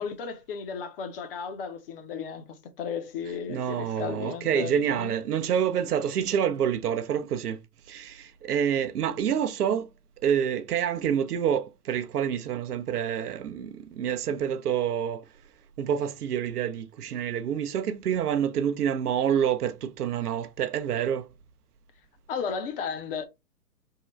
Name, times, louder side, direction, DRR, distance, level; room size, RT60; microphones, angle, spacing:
voice 1, 0.0-5.1 22.3-23.2, left 6 dB, 35° left, 0.7 m, -34 dB
voice 2, 3.5-7.6 7.9-9.9 10.2-15.3 15.8-21.3, right 8 dB, 70° right, 0.6 m, -27 dB
3.7 x 2.1 x 4.2 m
hypercardioid pair, 125°, 48 cm